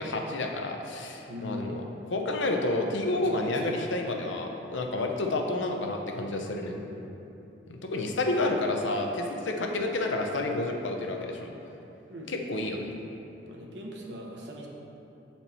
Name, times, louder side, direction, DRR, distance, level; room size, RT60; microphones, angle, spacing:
voice 1, 0.0-1.8 2.1-6.8 7.7-11.5 12.3-12.9, left 2 dB, 80° left, 2 dB, 0.7 m, -30 dB
voice 2, 1.3-1.8 2.9-3.8 6.7-7.2 12.1-12.3 13.5-14.7, equal, 65° right, -1 dB, 0.9 m, -40 dB
6.8 x 4.4 x 4.3 m, 2.9 s
head